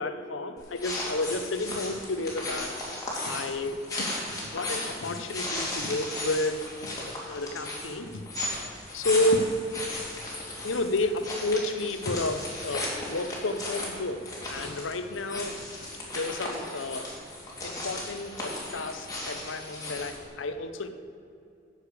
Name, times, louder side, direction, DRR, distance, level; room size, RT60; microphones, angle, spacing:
voice 1, 0.0-2.7 3.2-4.1 4.4-6.9 7.3-8.2 8.9-9.5 10.6-15.6 16.1-17.1 17.6-20.9, left 2 dB, 85° left, 9 dB, 0.8 m, -31 dB
sound 1, 0.6-20.3, left 1 dB, 20° left, 2.7 m, -36 dB
9.7 x 6.6 x 8.3 m, 2.5 s
head